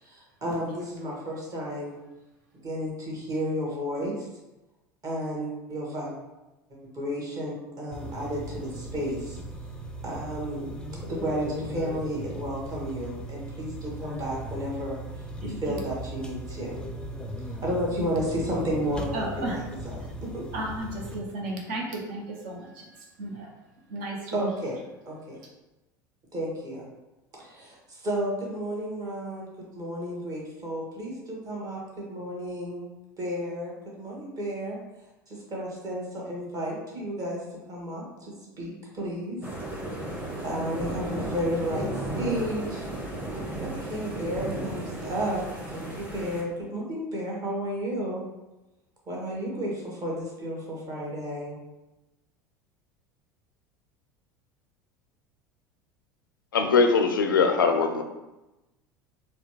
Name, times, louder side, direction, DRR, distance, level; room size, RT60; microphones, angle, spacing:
voice 1, 0.0-2.0 2.5-4.1 5.0-6.1 6.7-9.4 10.0-10.7 11.0-15.0 15.4-16.8 17.5-20.4 24.3-25.4 26.3-26.9 27.3-29.5 29.7-32.8 33.2-33.7 34.0-34.8 35.3-37.4 37.7-38.0 38.6-39.4 40.4-41.8 42.2-42.9 43.6-45.4 45.7-48.2 49.1-51.6, equal, 35° right, -3 dB, 1.4 m, -32 dB
sound 1, 7.9-21.2, right 1 dB, 10° left, 0.4 m, -38 dB
voice 2, 15.4-15.8 19.1-19.6 20.5-23.5 23.9-24.5, right 1 dB, 60° right, 0 dB, 0.8 m, -34 dB
sound 2, 39.4-46.4, right 1 dB, 15° right, 1.1 m, -34 dB
voice 3, 56.5-58.0, left 4 dB, 80° left, 6 dB, 0.4 m, -21 dB
4.2 x 2.3 x 3.1 m, 1.0 s
figure-of-eight pair, 75°, 11 cm